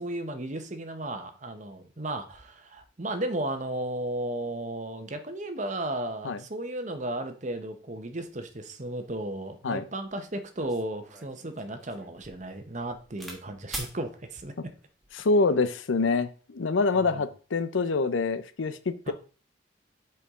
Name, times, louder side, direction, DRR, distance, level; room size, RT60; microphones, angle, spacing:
voice 1, 0.0-14.5 17.0-17.2 19.1-19.2, right 1 dB, 40° right, 7 dB, 0.9 m, -34 dB
sound 1, 10.0-10.1 10.6-13.4 13.7-14.0 14.8-15.2, right 1 dB, ahead, 1.3 m, -42 dB
voice 2, 15.1-19.1, left 3 dB, 85° left, 13 dB, 0.6 m, -26 dB
8.3 x 4.6 x 3.6 m, 0.38 s
head